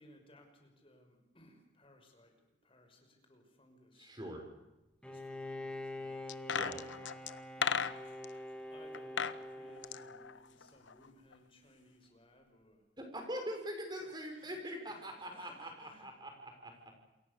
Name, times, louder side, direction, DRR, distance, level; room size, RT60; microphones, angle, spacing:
voice 1, 0.0-4.1 5.0-6.3 6.8-7.3 8.7-12.8 14.0-14.6 14.9-16.1, left 1 dB, 30° left, 4 dB, 6.0 m, -62 dB
voice 2, 4.0-4.4 6.5-6.8 13.0-16.7, equal, 20° right, 4 dB, 6.2 m, -43 dB
Bowed string instrument, 5.0-10.6, left 1 dB, 5° left, 2.7 m, -45 dB
sound 1, 6.3-8.3 8.9-9.4 9.7-11.1 11.3-11.4, left 6 dB, 75° left, 1.0 m, -36 dB
28.5 x 22.0 x 7.0 m, 0.99 s
head